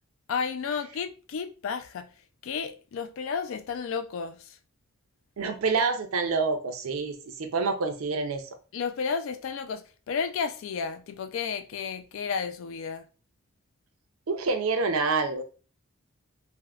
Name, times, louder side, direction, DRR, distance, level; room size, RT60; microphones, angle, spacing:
voice 1, 0.3-2.1 2.4-4.6 8.7-13.1, left 6 dB, 60° left, 0.3 m, -32 dB
voice 2, 5.4-8.4 14.3-15.4, right 4 dB, 70° right, 0.5 m, -27 dB
3.4 x 2.1 x 2.3 m
head